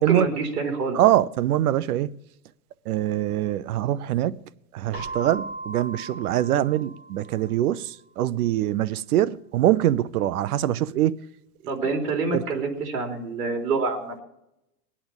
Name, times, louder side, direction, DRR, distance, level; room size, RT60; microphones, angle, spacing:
voice 1, 0.1-1.0 11.7-14.1, right 3 dB, 85° right, 3.8 m, -26 dB
voice 2, 0.9-2.1 2.9-4.4 4.7-11.2 12.3-12.4, right 13 dB, 70° right, 0.8 m, -23 dB
Keyboard (musical), 4.9-7.6, right 2 dB, 25° right, 2.9 m, -37 dB
21.5 x 8.7 x 7.0 m
supercardioid pair, 145°, 46 cm